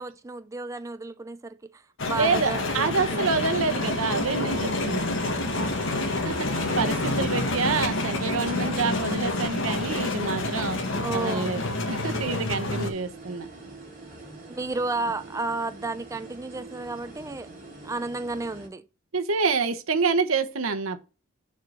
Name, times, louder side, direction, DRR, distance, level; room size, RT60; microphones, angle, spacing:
voice 1, 0.0-2.9 3.2-3.3 11.0-11.5 14.5-17.5 17.8-18.8, right 3 dB, 15° right, 0.4 m, -32 dB
sound 1, 2.0-12.9, left 2 dB, 65° left, 1.7 m, -28 dB
voice 2, 2.1-5.1 6.2-10.8 11.1-13.5 19.1-21.0, right 4 dB, 85° right, 1.0 m, -27 dB
sound 2, 3.3-18.7, right 2 dB, 45° right, 3.7 m, -45 dB
6.7 x 4.5 x 5.5 m
head